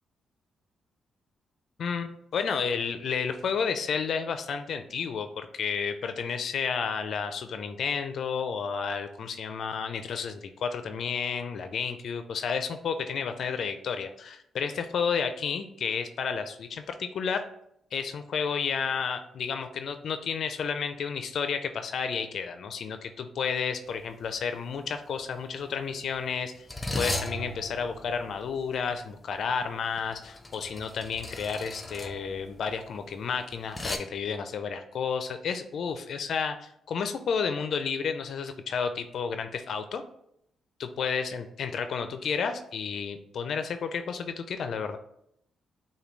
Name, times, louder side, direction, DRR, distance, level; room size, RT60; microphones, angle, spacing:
voice 1, 1.8-17.4 17.9-26.7 27.0-40.0 41.0-45.0, left 6 dB, 65° left, 8 dB, 0.4 m, -31 dB
sound 1, 23.9-24.1 24.4-24.7 25.5-34.0, left 1 dB, 20° left, 0.7 m, -37 dB
6.6 x 2.2 x 3.1 m, 0.73 s
supercardioid pair, 60°, 0 cm